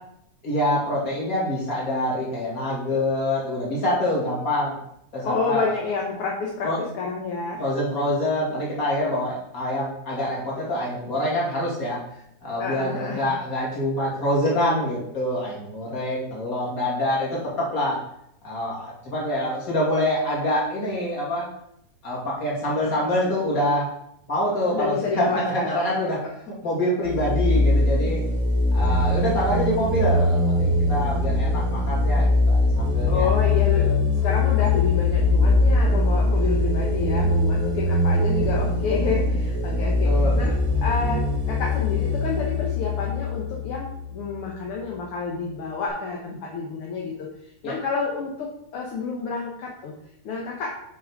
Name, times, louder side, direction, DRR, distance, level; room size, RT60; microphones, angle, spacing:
voice 1, 0.4-4.8 5.1-5.6 6.6-6.8 7.6-12.0 12.4-18.0 18.4-21.5 22.0-23.9 24.3-26.2 26.6-28.2 28.7-33.3 33.7-33.9 34.2-34.3 40.0-40.4 47.6-47.7, left 1 dB, 30° left, -5 dB, 2.5 m, -25 dB
voice 2, 5.2-7.6 12.6-13.3 24.7-25.7 33.0-40.5 40.8-47.3 47.6-49.9 50.2-50.7, left 4 dB, 65° left, -2 dB, 1.5 m, -29 dB
sound 1, 27.0-44.5, left 2 dB, 20° right, 1.1 m, -22 dB
7.7 x 4.9 x 4.7 m, 0.78 s
omnidirectional pair, 3.5 m